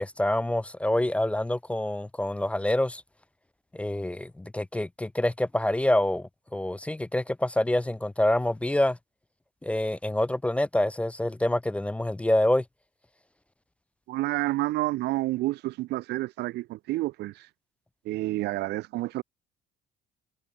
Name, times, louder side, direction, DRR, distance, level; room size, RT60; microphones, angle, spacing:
voice 1, 0.0-3.0 3.7-9.0 9.6-12.6, left 1 dB, 5° left, 0.4 m, -26 dB
voice 2, 14.1-17.5 18.0-19.2, right 18 dB, 80° right, 0.9 m, -29 dB
cardioid pair, 110°, 17 cm